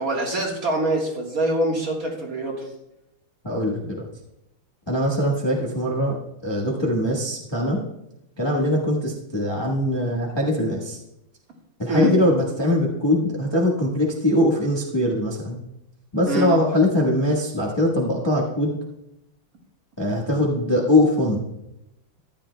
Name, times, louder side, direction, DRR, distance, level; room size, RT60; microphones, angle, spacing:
voice 1, 0.0-2.6 11.9-12.1 16.3-16.5, right 1 dB, 45° right, -1 dB, 1.9 m, -24 dB
voice 2, 3.4-4.1 4.9-6.2 6.4-7.8 8.4-11.0 11.8-15.6 16.1-18.8 20.0-21.4, left 1 dB, 15° left, -4 dB, 1.1 m, -22 dB
14.0 x 10.0 x 2.2 m, 0.86 s
omnidirectional pair, 2.2 m